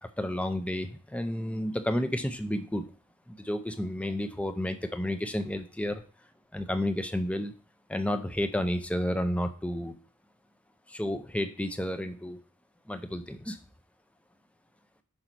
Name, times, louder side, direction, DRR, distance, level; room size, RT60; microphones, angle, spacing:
voice 1, 0.0-2.9 3.3-6.0 6.5-7.5 7.9-10.0 10.9-12.4 12.9-13.6, left 1 dB, 5° left, 8 dB, 0.6 m, -31 dB
5.5 x 5.0 x 6.0 m, 0.39 s
head